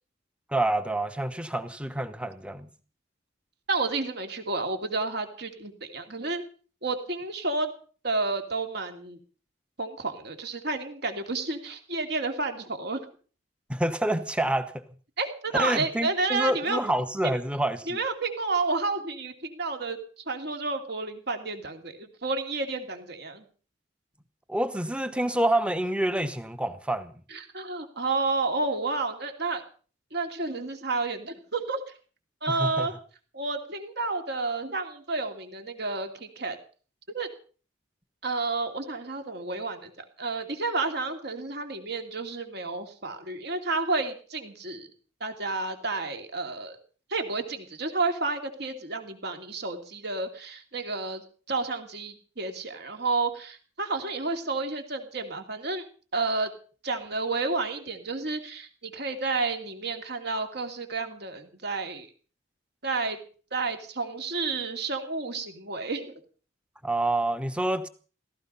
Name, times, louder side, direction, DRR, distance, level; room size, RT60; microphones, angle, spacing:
voice 1, 0.5-2.7 13.7-14.8 15.5-18.0 24.5-27.1 32.5-32.9 66.8-67.9, right 1 dB, 5° right, 1.0 m, -27 dB
voice 2, 3.7-6.4 6.8-7.7 8.0-9.2 9.8-13.0 15.2-16.8 17.9-20.0 20.3-23.4 27.3-29.6 30.1-31.8 32.4-32.9 33.3-36.6 37.1-37.3 38.2-39.9 40.2-44.9 45.2-46.8 47.1-55.8 56.1-56.5 56.8-62.1 62.8-63.2 63.5-66.1, right 3 dB, 55° right, 2.8 m, -30 dB
16.5 x 15.5 x 5.6 m
head